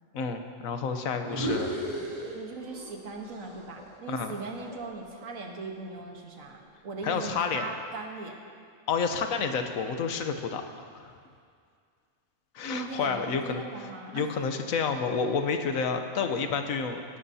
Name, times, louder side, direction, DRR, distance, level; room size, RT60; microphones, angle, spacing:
voice 1, 0.1-1.7 4.1-4.3 7.0-7.7 8.9-10.6 10.9-11.1 12.5-13.6 14.1-17.0, left 5 dB, 90° left, 6 dB, 1.3 m, -29 dB
sound 1, 1.2-2.9 3.2-5.5, right 1 dB, 30° right, 2.7 m, -36 dB
voice 2, 2.3-6.6 6.8-8.4 12.7-14.3, right 3 dB, 80° right, 2 dB, 1.6 m, -39 dB
17.5 x 11.5 x 2.8 m, 2.2 s
omnidirectional pair, 1.4 m